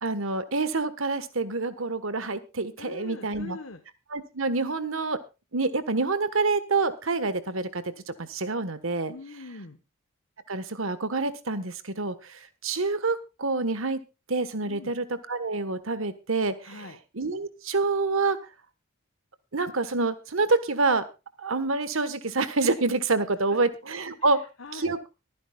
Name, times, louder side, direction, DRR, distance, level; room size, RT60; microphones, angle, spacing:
voice 1, 0.0-3.6 4.1-5.2 5.5-9.1 10.5-14.0 14.3-16.9 17.1-18.4 19.5-21.0 21.4-24.4 24.7-25.1, right 3 dB, 70° right, 13 dB, 1.4 m, -27 dB
voice 2, 2.8-3.8 9.1-9.8 14.6-14.9 16.6-17.0 23.5-23.6 24.2-25.0, left 3 dB, 65° left, 6 dB, 1.2 m, -43 dB
24.0 x 10.0 x 2.3 m, 0.29 s
head